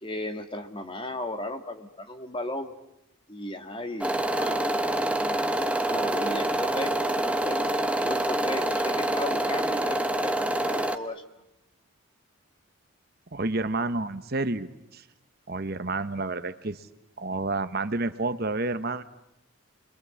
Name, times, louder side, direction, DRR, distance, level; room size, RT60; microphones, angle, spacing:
voice 1, 0.0-2.7 3.3-4.6 5.2-5.5 5.8-11.2, left 1 dB, 25° left, 6 dB, 1.8 m, -36 dB
sound 1, 4.0-11.0, right 1 dB, 5° right, 1.1 m, -26 dB
voice 2, 13.3-15.0 15.5-16.9 17.2-19.0, right 2 dB, 45° right, 11 dB, 1.0 m, -30 dB
30.0 x 23.0 x 8.5 m, 0.86 s
head